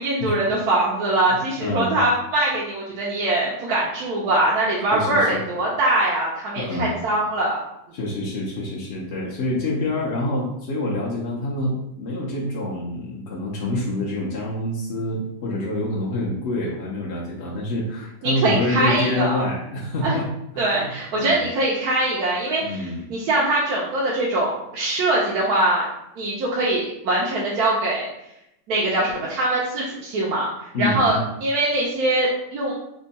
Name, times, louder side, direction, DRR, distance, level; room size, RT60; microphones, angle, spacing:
voice 1, 0.0-7.6 18.2-19.4 20.0-20.1 20.6-25.9 26.2-28.1 28.7-30.5 30.8-32.7, right 2 dB, 85° right, -6 dB, 1.2 m, -22 dB
voice 2, 1.3-2.0 4.9-5.4 6.6-7.0 7.9-20.3 20.5-21.4 22.6-23.0 30.7-31.2, left 1 dB, 55° left, -5 dB, 0.8 m, -27 dB
3.5 x 2.2 x 3.9 m, 0.82 s
omnidirectional pair, 1.6 m